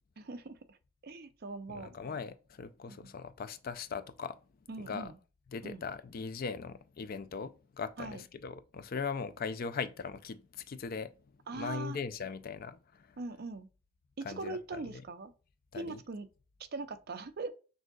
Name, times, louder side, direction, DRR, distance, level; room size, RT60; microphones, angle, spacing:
voice 1, 0.2-0.8 1.0-1.9 2.9-3.1 4.7-5.1 5.6-5.9 8.0-8.2 11.5-12.0 13.2-13.7 14.2-15.3 15.7-16.3 16.6-17.5, right 3 dB, 50° right, 0.5 m, -41 dB
voice 2, 1.7-4.4 4.8-5.1 5.5-11.1 11.5-13.2 14.2-15.0 15.7-16.0, left 5 dB, 45° left, 0.4 m, -40 dB
6.1 x 2.7 x 2.3 m
head